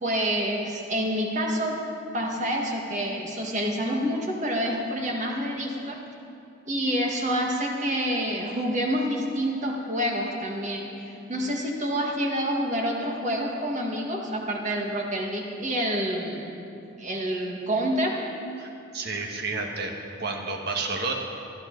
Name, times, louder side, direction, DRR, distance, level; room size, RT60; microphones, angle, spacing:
voice 1, 0.0-1.8 2.1-6.0 6.7-16.5 17.0-18.2, equal, 35° right, 0 dB, 1.8 m, -28 dB
voice 2, 18.6-19.9 20.2-21.1, right 3 dB, 55° right, 2 dB, 1.6 m, -30 dB
20.5 x 12.5 x 4.0 m, 2.7 s
head